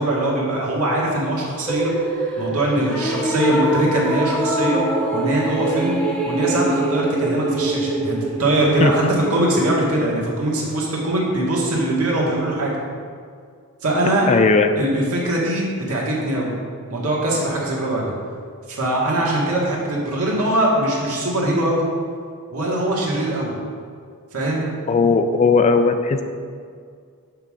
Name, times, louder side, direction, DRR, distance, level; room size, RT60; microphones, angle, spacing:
voice 1, 0.0-1.9 2.4-4.8 5.1-6.0 6.2-9.0 9.3-12.7 13.8-14.3 14.8-16.5 16.9-18.1 18.7-21.8 22.5-23.5 24.3-24.7, right 1 dB, 75° right, -4 dB, 1.8 m, -21 dB
sound 1, 1.7-9.9, right 2 dB, 5° left, 0.8 m, -24 dB
voice 2, 14.3-14.7 24.9-26.2, left 4 dB, 30° left, 8 dB, 0.3 m, -16 dB
6.6 x 3.6 x 6.3 m, 2.1 s
head